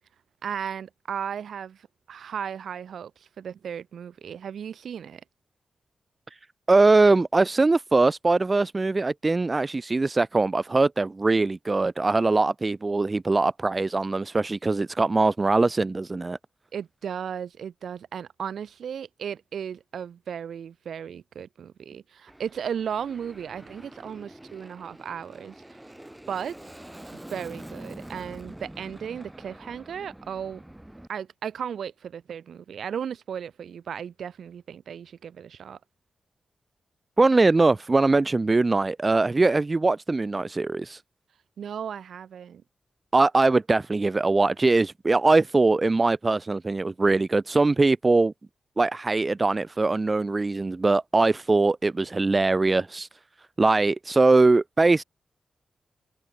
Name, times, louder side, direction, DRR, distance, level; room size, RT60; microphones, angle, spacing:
voice 1, 0.4-5.2 16.7-25.6 26.3-26.6 27.3-30.6 31.1-35.8 41.6-42.6, right 8 dB, 85° right, 4.4 m, -35 dB
voice 2, 6.7-16.4 37.2-41.0 43.1-48.3 48.8-53.1 53.6-55.0, right 3 dB, 25° right, 0.3 m, -22 dB
Aircraft, 22.3-31.1, right 1 dB, 10° right, 5.2 m, -45 dB
wide cardioid pair, 135°, 0 cm